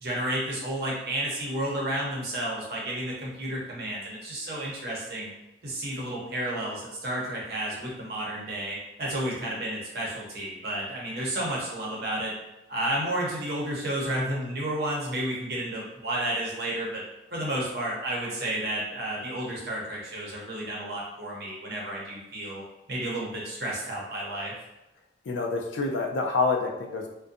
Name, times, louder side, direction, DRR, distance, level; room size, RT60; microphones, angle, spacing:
voice 1, 0.0-5.3 5.6-12.3 12.7-17.0 17.3-22.6 22.9-24.5, right 1 dB, 55° right, -4 dB, 0.7 m, -31 dB
voice 2, 25.3-27.1, left 4 dB, 85° left, 2 dB, 0.4 m, -27 dB
2.5 x 2.2 x 2.5 m, 0.94 s
head